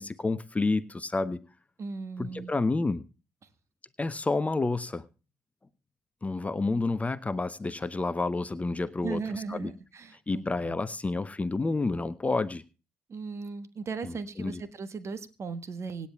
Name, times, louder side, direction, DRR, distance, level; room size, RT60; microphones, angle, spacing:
voice 1, 0.0-1.4 2.2-3.0 4.0-5.0 6.2-9.7 10.3-12.6 14.0-14.6, left 3 dB, 20° left, 15 dB, 0.7 m, -29 dB
voice 2, 1.8-2.5 9.0-10.8 13.1-16.1, right 4 dB, 40° right, 11 dB, 1.4 m, -37 dB
25.5 x 10.0 x 2.4 m, 0.33 s
figure-of-eight pair, 50°, 7 cm